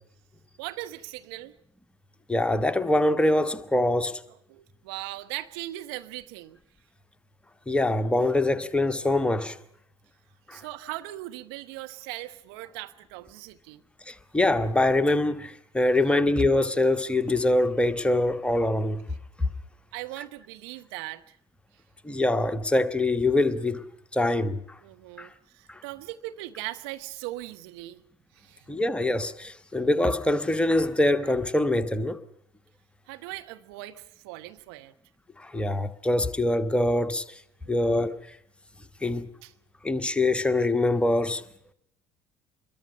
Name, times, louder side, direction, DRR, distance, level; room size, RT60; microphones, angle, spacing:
voice 1, 0.6-1.5 4.3-6.6 10.5-13.8 16.1-16.2 19.9-21.4 24.8-28.0 28.3-28.7 33.1-34.9 37.6-37.9 39.4-39.5, right 17 dB, 60° right, 1.2 m, -39 dB
voice 2, 2.3-4.2 7.7-9.6 10.5-10.6 14.1-19.0 22.0-24.8 25.2-25.3 25.7-25.8 28.7-32.2 35.4-37.4 37.7-38.4 39.0-39.3 39.8-41.4, left 2 dB, 5° left, 1.3 m, -24 dB
25.5 x 22.0 x 5.6 m
figure-of-eight pair, 60°, 14 cm